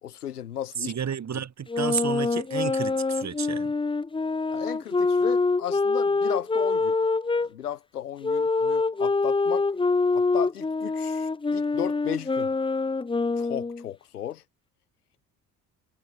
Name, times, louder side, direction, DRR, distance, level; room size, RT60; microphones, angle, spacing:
voice 1, 0.0-0.9 1.3-1.4 4.5-7.0 7.4-9.7 10.1-12.5 13.4-14.4, left 10 dB, 80° left, 4.1 m, -35 dB
voice 2, 0.8-3.7, right 8 dB, 35° right, 3.7 m, -31 dB
sound 1, 1.7-7.5 8.2-13.9, left 3 dB, 10° left, 0.9 m, -25 dB
figure-of-eight pair, 55°, 46 cm